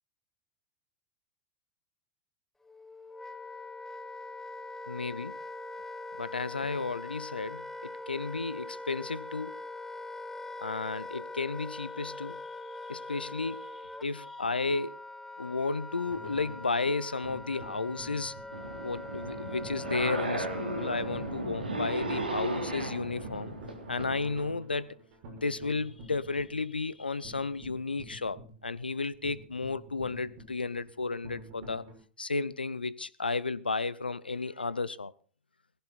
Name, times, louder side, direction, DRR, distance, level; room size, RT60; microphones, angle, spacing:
Wind instrument woodwind instrument, 2.6-21.5, left 2 dB, 5° left, 1.1 m, -43 dB
voice 1, 4.9-5.3 6.2-9.6 10.6-12.4 12.8-15.0 15.4-18.4 18.8-23.5 23.9-25.0 25.4-31.8 32.2-35.1, left 3 dB, 85° left, 0.7 m, -33 dB
sound 1, 16.1-32.0, right 1 dB, 55° right, 6.3 m, -49 dB
sound 2, 18.5-24.2, right 2 dB, 80° right, 3.4 m, -35 dB
18.5 x 15.5 x 4.2 m
figure-of-eight pair, 85°, 5 cm